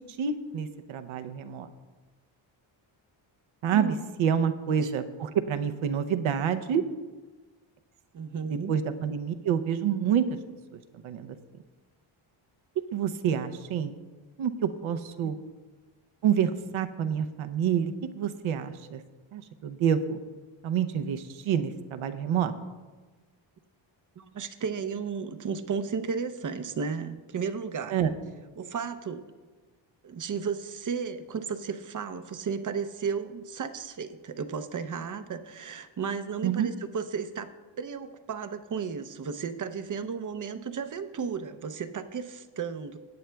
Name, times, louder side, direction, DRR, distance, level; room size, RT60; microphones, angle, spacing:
voice 1, 0.2-1.7 3.6-6.8 8.7-10.3 11.0-11.4 12.8-13.9 14.4-15.3 16.2-19.0 19.3-20.2 20.6-22.5 27.9-28.1 36.4-36.7, right 8 dB, 75° right, 9 dB, 0.7 m, -28 dB
voice 2, 8.1-8.7 15.2-15.3 24.2-28.0 28.6-29.2 30.0-37.5 37.8-43.0, right 6 dB, 40° right, 10 dB, 0.6 m, -34 dB
17.0 x 8.6 x 2.3 m, 1.3 s
cardioid pair, 110°, 49 cm